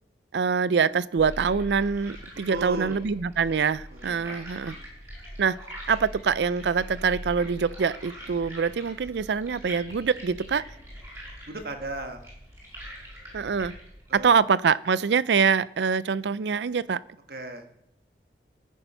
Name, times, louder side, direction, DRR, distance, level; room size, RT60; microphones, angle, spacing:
voice 1, 0.3-4.8 5.4-5.6 5.9-10.6 13.3-13.7 14.1-17.0, right 6 dB, 85° right, 0.4 m, -24 dB
sound 1, 1.2-14.2, equal, 15° right, 5.3 m, -42 dB
voice 2, 2.5-3.0 3.9-4.3 11.5-12.2 14.1-14.3 17.3-17.8, right 2 dB, 60° right, 1.4 m, -36 dB
14.0 x 10.0 x 5.5 m
head